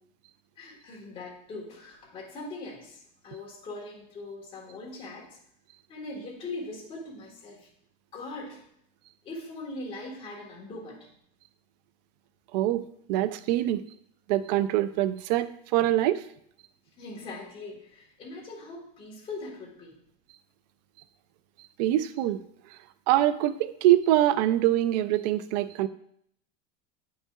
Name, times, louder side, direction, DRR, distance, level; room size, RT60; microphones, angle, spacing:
voice 1, 0.6-3.0 3.2-5.4 5.9-7.7 8.1-8.6 9.2-11.1 17.0-19.9, left 2 dB, 25° left, -2 dB, 1.6 m, -41 dB
voice 2, 12.5-13.8 14.3-16.2 21.8-22.4 23.1-25.9, right 13 dB, 80° right, 14 dB, 0.4 m, -24 dB
8.6 x 5.4 x 2.4 m, 0.69 s
cardioid pair, 175°, 21 cm